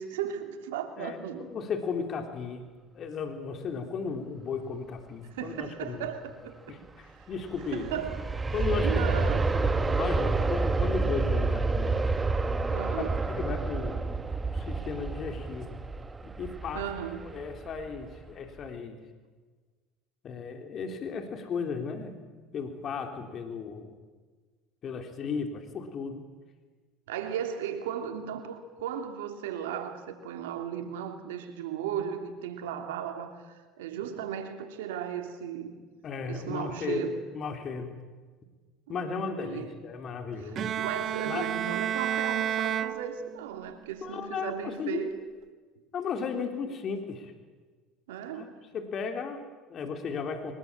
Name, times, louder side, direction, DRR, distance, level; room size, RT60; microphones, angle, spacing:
voice 1, 0.0-1.5 5.3-6.8 7.2-7.3 7.7-8.3 8.8-9.5 12.7-13.2 16.7-17.3 27.1-35.8 36.2-37.2 38.9-39.7 40.4-45.2 48.1-48.6, right 9 dB, 90° right, 3.0 m, -36 dB
voice 2, 1.0-2.7 2.9-6.1 6.7-8.0 8.5-9.3 9.6-12.0 13.0-14.1 14.5-15.8 16.2-16.8 17.3-19.0 20.2-22.2 22.5-23.9 24.8-26.2 36.0-38.0 38.9-40.7 41.2-41.5 44.0-45.0 45.9-47.3 48.3-50.5, left 5 dB, 45° left, 3.6 m, -35 dB
Aircraft, 7.3-18.2 18.6-18.7, right 3 dB, 20° right, 1.5 m, -29 dB
Bowed string instrument, 40.6-43.7, right 9 dB, 50° right, 1.3 m, -31 dB
23.5 x 21.0 x 8.9 m
supercardioid pair, 85°, 0 cm